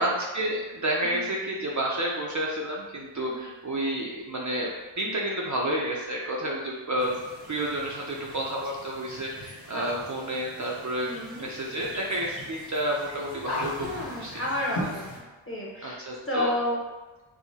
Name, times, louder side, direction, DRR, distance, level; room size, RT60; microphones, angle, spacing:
voice 1, 0.0-4.7 5.0-7.2 7.5-11.1 11.4-14.4 15.8-16.5, right 1 dB, 40° right, -2 dB, 0.5 m, -30 dB
sound 1, 7.0-15.2, left 1 dB, 55° left, 0.9 m, -40 dB
voice 2, 11.0-11.5 13.8-16.0 16.3-16.8, left 1 dB, 25° left, -4 dB, 0.9 m, -31 dB
4.6 x 2.1 x 2.7 m, 1.2 s
wide cardioid pair, 85°, 49 cm